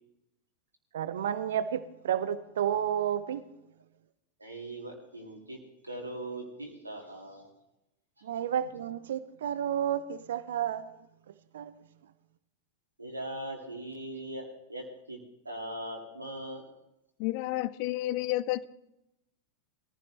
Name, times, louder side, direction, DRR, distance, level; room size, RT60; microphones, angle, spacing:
voice 1, 0.9-3.5 8.2-10.9 11.3-11.7, right 9 dB, 60° right, 0.7 m, -31 dB
voice 2, 4.4-7.5 13.0-15.2 15.4-16.6, right 1 dB, 80° right, 2.4 m, -40 dB
voice 3, 17.2-18.7, left 16 dB, 45° left, 0.5 m, -30 dB
21.5 x 15.0 x 3.3 m
figure-of-eight pair, 90°, 0 cm